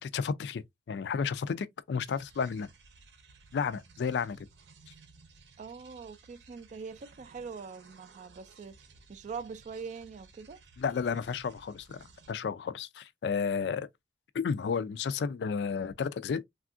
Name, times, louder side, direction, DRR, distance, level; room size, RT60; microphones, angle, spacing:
voice 1, 0.0-2.7 3.5-4.5 10.8-13.9 14.3-16.4, left 6 dB, 70° left, 0.3 m, -32 dB
sound 1, 2.0-12.3, right 4 dB, 85° right, 0.7 m, -58 dB
voice 2, 5.6-8.8 9.1-10.6, right 5 dB, 45° right, 0.3 m, -43 dB
3.4 x 2.3 x 2.4 m
head